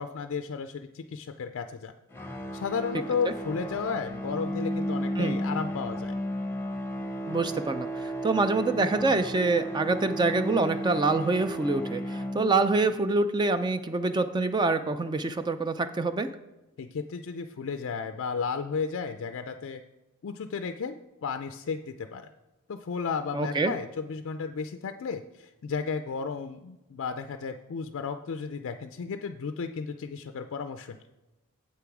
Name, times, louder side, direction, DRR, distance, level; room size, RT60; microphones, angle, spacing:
voice 1, 0.0-1.9 2.5-6.1 16.8-19.8 20.2-21.0 21.2-22.3 22.7-31.0, left 5 dB, 60° left, 8 dB, 0.4 m, -33 dB
sound 1, 2.1-12.9, equal, 10° left, 0.8 m, -34 dB
voice 2, 7.3-16.3 23.3-23.7, right 3 dB, 20° right, 10 dB, 0.3 m, -26 dB
7.6 x 6.9 x 4.8 m, 1.0 s
head